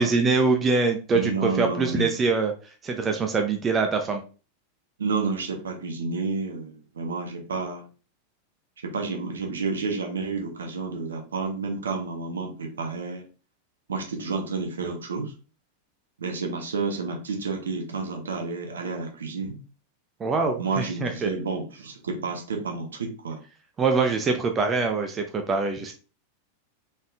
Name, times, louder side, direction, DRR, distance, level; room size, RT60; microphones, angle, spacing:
voice 1, 0.0-2.5 2.8-4.2 20.2-21.3 23.8-25.9, right 4 dB, 20° right, 5 dB, 0.5 m, -24 dB
voice 2, 1.1-2.1 5.0-7.8 8.8-13.3 13.9-15.3 16.2-19.6 20.6-23.4, right 4 dB, 70° right, 3 dB, 0.9 m, -30 dB
4.0 x 3.6 x 2.4 m, 0.34 s
figure-of-eight pair, 90°, 0 cm